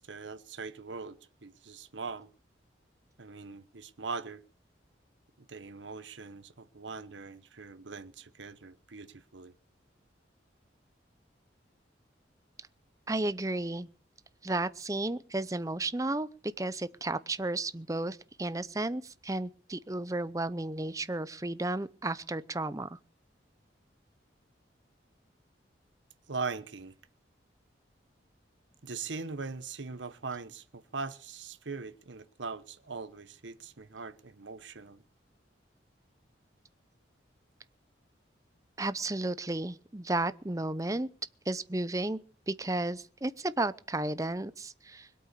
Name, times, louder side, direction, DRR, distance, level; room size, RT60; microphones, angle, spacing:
voice 1, 0.0-2.3 3.2-4.4 5.5-9.5 26.3-27.0 28.8-35.0, right 4 dB, 80° right, 1.1 m, -41 dB
voice 2, 13.1-13.9 14.4-16.3 16.6-23.0 38.8-41.1 41.5-42.2 42.5-45.1, right 2 dB, 20° right, 0.7 m, -33 dB
21.5 x 8.6 x 6.9 m
head